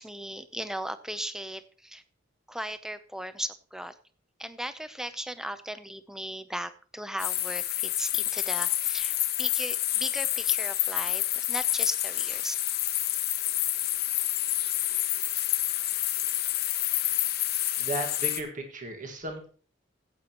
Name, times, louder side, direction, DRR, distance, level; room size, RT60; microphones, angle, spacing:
voice 1, 0.0-2.0 2.5-3.9 4.4-12.6, right 1 dB, 5° right, 11 dB, 0.6 m, -37 dB
sound 1, 7.2-18.4, left 14 dB, 50° left, 0.8 m, -28 dB
voice 2, 17.8-19.5, right 2 dB, 40° right, 4 dB, 1.8 m, -35 dB
15.0 x 8.7 x 3.0 m, 0.41 s
head